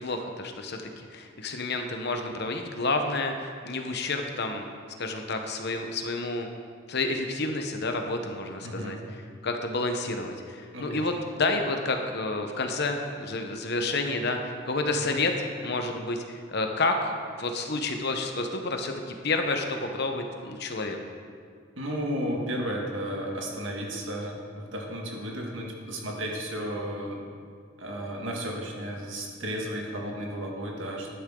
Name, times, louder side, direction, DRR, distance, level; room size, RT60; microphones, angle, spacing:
voice 1, 0.0-4.6 5.0-6.5 6.9-9.0 9.4-15.3 15.6-21.0, left 2 dB, 60° left, 4 dB, 1.1 m, -30 dB
voice 2, 8.6-9.0 10.7-11.1 21.8-27.2 27.8-31.1, equal, 75° right, 0 dB, 1.9 m, -33 dB
11.5 x 10.5 x 3.9 m, 2.1 s
head